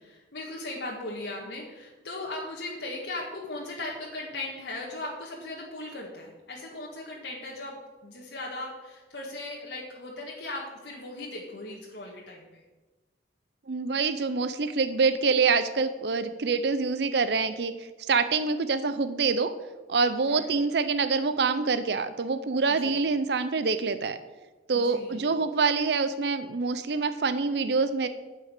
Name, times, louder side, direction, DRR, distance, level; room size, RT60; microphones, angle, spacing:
voice 1, 0.0-12.5 20.3-20.5 22.7-23.0 24.7-25.4, left 2 dB, 75° left, -2 dB, 1.7 m, -38 dB
voice 2, 13.7-17.7 18.0-19.5 19.9-24.2 24.7-28.1, right 4 dB, 65° right, 11 dB, 0.6 m, -26 dB
9.4 x 5.6 x 8.2 m, 1.2 s
head